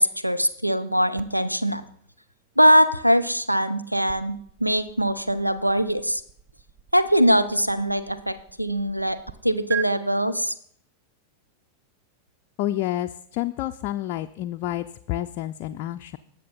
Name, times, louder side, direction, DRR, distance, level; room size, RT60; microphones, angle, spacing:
voice 1, 0.0-1.8 2.6-6.2 6.9-9.2 9.4-10.5, equal, 90° right, 11 dB, 0.6 m, -22 dB
sound 1, 1.2-9.3 9.7-9.9, right 11 dB, 40° right, 0.5 m, -42 dB
voice 2, 12.6-16.2, left 14 dB, 45° left, 6 dB, 0.4 m, -29 dB
19.5 x 6.7 x 4.0 m, 0.62 s
figure-of-eight pair, 90°, 0 cm